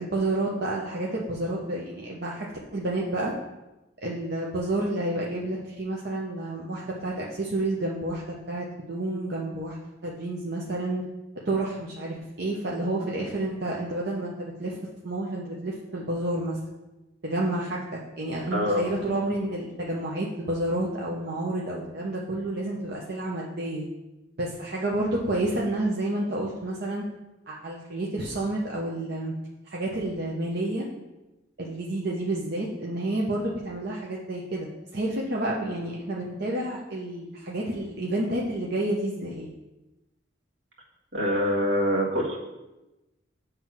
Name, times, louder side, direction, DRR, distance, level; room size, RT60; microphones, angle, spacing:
voice 1, 0.0-2.5 2.7-3.3 4.0-9.8 10.0-11.0 11.4-14.8 15.0-16.6 17.2-23.9 24.4-27.0 27.5-29.3 29.7-30.9 31.6-39.5, right 1 dB, 60° right, -3 dB, 0.9 m, -30 dB
voice 2, 18.5-18.8 41.1-42.4, equal, 85° right, -2 dB, 1.7 m, -24 dB
7.5 x 3.4 x 5.9 m, 1.0 s
head